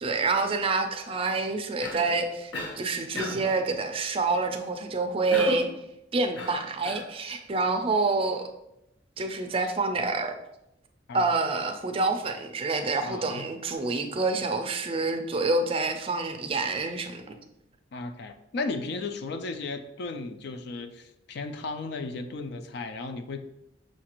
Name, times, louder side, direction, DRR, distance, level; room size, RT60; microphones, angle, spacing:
voice 1, 0.0-5.7 6.1-8.4 9.2-10.3 11.1-17.4, right 3 dB, 30° right, 5 dB, 0.4 m, -27 dB
Cough, 1.8-2.1 2.5-2.8 3.2-3.5 5.3-5.7 6.3-7.1, left 1 dB, 85° left, 0.9 m, -35 dB
voice 2, 13.0-13.4 17.9-23.4, left 3 dB, 60° left, 7 dB, 0.4 m, -35 dB
6.2 x 2.5 x 2.9 m, 0.84 s
head